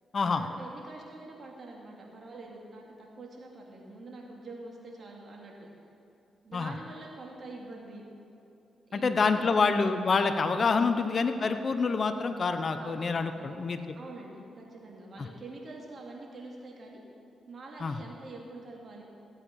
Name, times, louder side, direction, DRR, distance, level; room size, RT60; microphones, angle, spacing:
voice 1, 0.3-5.7 6.4-8.0 8.9-9.6 10.6-11.0 12.8-13.1 13.4-13.6 13.9-17.0 17.5-19.0, right 2 dB, 50° right, -1 dB, 2.9 m, -46 dB
voice 2, 8.9-14.0 15.2-15.3 17.8-18.0, left 4 dB, 50° left, 8 dB, 0.8 m, -27 dB
16.0 x 8.2 x 5.6 m, 2.7 s
cardioid pair, 65°, 0 cm